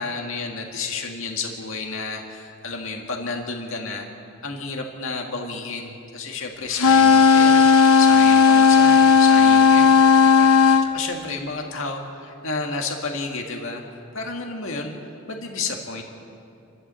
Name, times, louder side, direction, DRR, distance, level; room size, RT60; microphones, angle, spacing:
voice 1, 0.0-4.1 4.4-7.7 8.0-10.5 10.8-13.8 14.1-14.9 15.3-16.0, left 4 dB, 70° left, 2 dB, 2.0 m, -31 dB
sound 1, 6.7-10.9, left 6 dB, 85° left, 1.0 m, -14 dB
29.0 x 12.5 x 7.6 m, 2.6 s
head